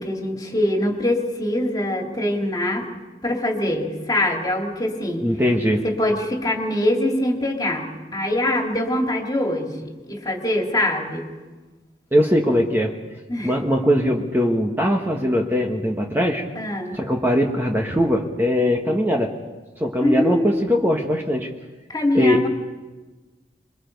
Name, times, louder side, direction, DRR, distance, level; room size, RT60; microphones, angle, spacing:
voice 1, 0.0-2.9 3.2-5.3 5.8-11.3 13.3-13.6 16.5-17.0 20.0-20.9 21.9-22.5, left 1 dB, 20° left, 2 dB, 2.5 m, -23 dB
voice 2, 5.2-5.8 12.1-13.0 13.4-16.4 16.9-19.4 19.8-21.5 22.1-22.5, equal, 15° right, 0 dB, 1.4 m, -20 dB
26.5 x 22.5 x 5.3 m, 1.3 s
head